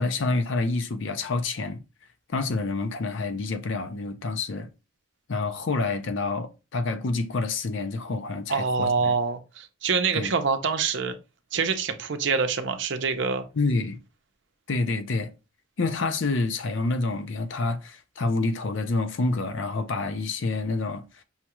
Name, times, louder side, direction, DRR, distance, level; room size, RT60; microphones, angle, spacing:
voice 1, 0.0-1.8 2.3-4.7 5.3-8.9 10.1-10.3 13.5-14.0 14.7-15.3 15.8-21.2, left 3 dB, 60° left, 0.5 m, -28 dB
voice 2, 8.5-11.2 11.5-13.4, right 5 dB, 60° right, 0.6 m, -25 dB
5.6 x 2.3 x 2.9 m
head